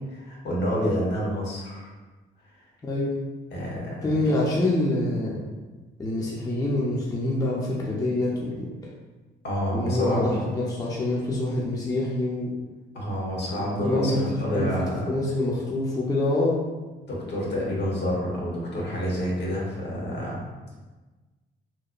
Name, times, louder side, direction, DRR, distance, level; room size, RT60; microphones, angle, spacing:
voice 1, 0.1-1.9 3.5-4.1 9.4-10.4 12.9-15.0 17.1-20.4, equal, 60° left, -4 dB, 0.9 m, -28 dB
voice 2, 2.8-3.2 4.0-5.4 6.0-8.7 9.7-12.5 13.6-14.2 14.5-14.7 15.0-16.6, left 2 dB, 20° left, -4 dB, 0.5 m, -26 dB
2.8 x 2.1 x 2.4 m, 1.2 s
cardioid pair, 90°, 20 cm